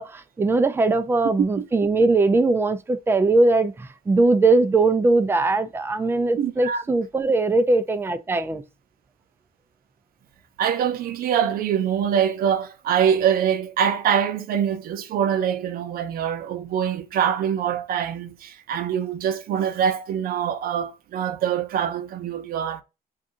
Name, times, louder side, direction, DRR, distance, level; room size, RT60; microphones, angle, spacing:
voice 1, 0.0-8.6, right 3 dB, 15° right, 0.4 m, -20 dB
voice 2, 6.4-6.8 10.6-22.8, right 8 dB, 60° right, 0.6 m, -24 dB
2.6 x 2.4 x 3.8 m
cardioid pair, 110°, 17 cm